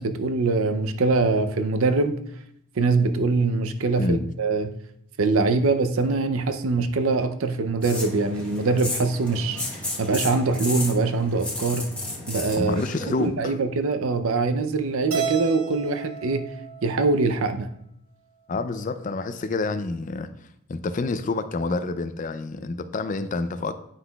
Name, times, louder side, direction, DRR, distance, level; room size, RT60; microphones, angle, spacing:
voice 1, 0.0-2.2 2.8-4.8 5.2-9.7 10.0-11.9 12.3-12.8 13.2-16.5 16.8-17.7, right 3 dB, 65° right, 0.5 m, -23 dB
voice 2, 4.0-4.3 12.5-13.6 18.5-20.3 20.7-23.7, left 3 dB, 35° left, 0.4 m, -28 dB
sound 1, 7.8-13.3, left 2 dB, 5° left, 1.0 m, -33 dB
Keyboard (musical), 15.1-17.5, right 6 dB, 85° right, 1.6 m, -32 dB
9.5 x 5.8 x 2.3 m
head